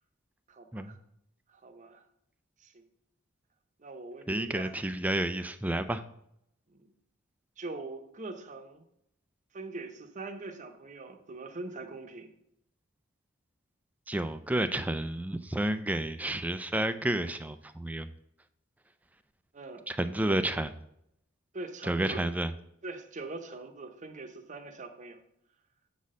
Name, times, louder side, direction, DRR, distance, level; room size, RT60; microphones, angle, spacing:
voice 1, 0.5-1.0 1.5-2.0 2.6-2.8 3.8-4.7 6.7-6.9 7.6-8.8 9.5-12.3 19.5-19.8 21.5-22.2 22.8-25.2, right 2 dB, 35° right, 7 dB, 0.8 m, -42 dB
voice 2, 4.3-6.0 14.1-18.1 19.9-20.7 21.8-22.5, right 1 dB, 5° right, 11 dB, 0.3 m, -30 dB
8.1 x 4.1 x 6.3 m, 0.76 s
head